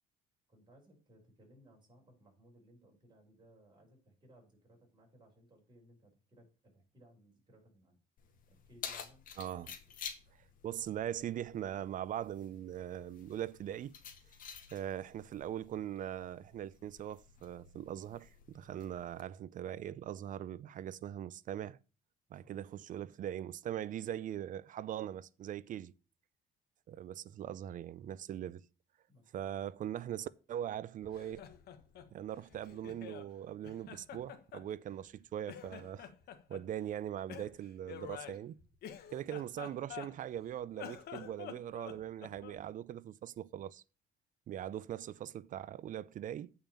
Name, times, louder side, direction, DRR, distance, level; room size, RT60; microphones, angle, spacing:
voice 1, 0.5-8.0 8.5-9.2 22.4-22.6 29.1-29.3, equal, 25° right, 5.6 m, -63 dB
Keys jangling, 8.2-19.2, left 7 dB, 55° left, 2.0 m, -51 dB
voice 2, 9.4-9.8 10.6-13.9 14.7-21.8 22.3-25.9 26.9-28.7 29.3-31.5 32.1-36.1 36.5-38.6 39.1-43.8 44.5-46.5, right 11 dB, 50° right, 0.5 m, -41 dB
Laughter, 31.0-33.3 33.6-35.2 35.4-36.6 37.3-40.4 40.7-42.6, left 9 dB, 70° left, 1.5 m, -49 dB
8.6 x 5.6 x 7.1 m
cardioid pair, 110°, 17 cm